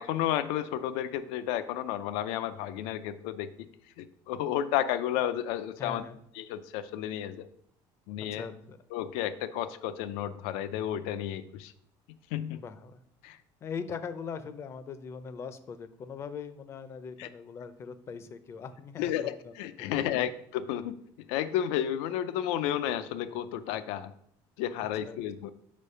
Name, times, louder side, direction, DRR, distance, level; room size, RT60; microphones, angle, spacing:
voice 1, 0.0-3.5 4.0-6.0 6.4-7.5 8.1-8.4 8.9-11.7 12.3-12.6 13.2-13.4 17.2-17.3 19.0-21.0 21.3-24.1 24.6-25.5, left 11 dB, 90° left, 13 dB, 0.4 m, -32 dB
voice 2, 5.8-6.2 8.3-8.8 12.5-13.0 13.6-20.3 24.8-25.2, left 6 dB, 30° left, 12 dB, 0.5 m, -41 dB
5.1 x 4.5 x 5.5 m, 0.69 s
cardioid pair, 160°, 9 cm